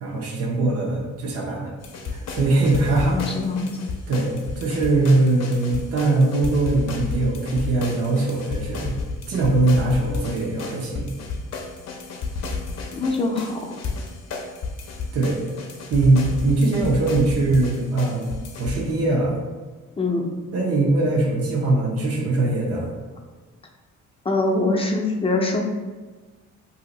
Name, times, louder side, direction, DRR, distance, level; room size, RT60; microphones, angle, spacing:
voice 1, 0.0-1.7 2.0-3.2 4.1-11.1 15.1-15.4 15.9-18.3 18.6-19.4 20.5-22.9, right 2 dB, 50° right, -2 dB, 0.8 m, -21 dB
sound 1, 1.8-18.9, left 4 dB, 60° left, 0.6 m, -32 dB
voice 2, 2.9-3.7 12.9-13.7 20.0-20.2 24.2-25.6, left 2 dB, 20° left, 0 dB, 0.6 m, -23 dB
2.7 x 2.5 x 3.9 m, 1.3 s
cardioid pair, 90°, 30 cm